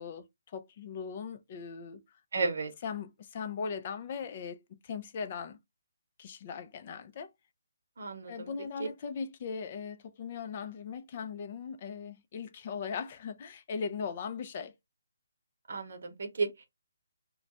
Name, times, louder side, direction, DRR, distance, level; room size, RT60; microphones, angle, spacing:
voice 1, 0.0-2.0 2.8-5.6 6.2-7.3 8.3-14.7, left 6 dB, 35° left, 0.4 m, -39 dB
voice 2, 2.3-2.7 8.0-8.5 15.7-16.7, right 4 dB, 65° right, 0.8 m, -33 dB
2.3 x 2.1 x 3.9 m
hypercardioid pair, 160°, 0 cm